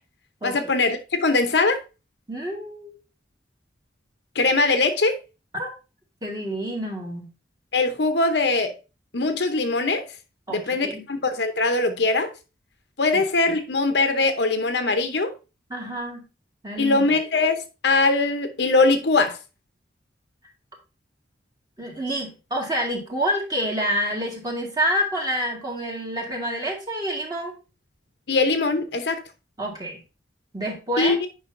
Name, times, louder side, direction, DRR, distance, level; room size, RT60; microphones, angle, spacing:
voice 1, 0.4-1.8 4.3-5.2 7.7-8.8 9.1-10.0 10.5-12.3 13.0-15.3 16.8-19.4 28.3-29.2 31.0-31.3, left 3 dB, 60° left, 0.8 m, -21 dB
voice 2, 2.3-3.0 5.5-5.7 6.2-7.3 10.5-11.0 13.1-13.2 15.7-16.3 16.6-17.1 21.8-27.5 29.6-30.0 30.5-31.2, equal, 20° right, 1.8 m, -28 dB
8.9 x 5.5 x 2.6 m
head